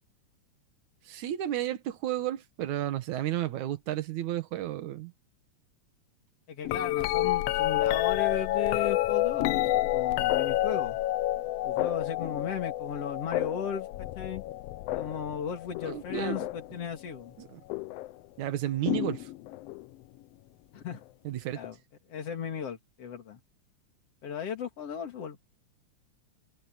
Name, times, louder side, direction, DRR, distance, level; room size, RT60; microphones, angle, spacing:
voice 1, 1.1-5.1 15.8-16.5 17.4-17.6 18.4-19.3 21.2-21.6, right 13 dB, 80° right, 2.7 m, -32 dB
voice 2, 6.5-11.0 11.6-14.4 14.9-17.3 20.7-21.0 21.5-21.8 22.1-23.4 24.2-25.4, left 7 dB, 55° left, 3.2 m, -36 dB
sound 1, 6.6-16.8 17.7-18.1 18.9-19.8 21.6-21.7, left 16 dB, 85° left, 1.3 m, -29 dB
omnidirectional pair, 3.4 m